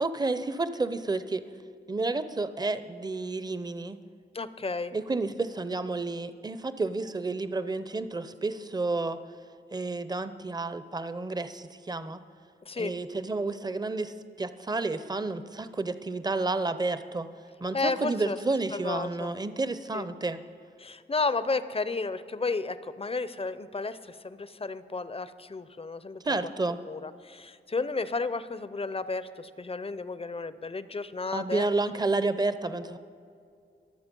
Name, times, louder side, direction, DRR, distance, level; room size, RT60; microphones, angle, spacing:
voice 1, 0.0-1.4 1.9-4.0 4.9-9.2 9.7-12.2 12.8-17.3 17.6-20.4 26.2-26.8 31.3-33.0, right 3 dB, 20° right, 12 dB, 0.6 m, -30 dB
voice 2, 4.3-4.9 12.7-12.9 17.7-18.4 18.7-19.3 19.9-20.1 20.8-26.5 26.8-31.7, left 3 dB, 30° left, 14 dB, 0.6 m, -32 dB
22.5 x 7.8 x 5.3 m, 2.4 s
wide cardioid pair, 75°, 19 cm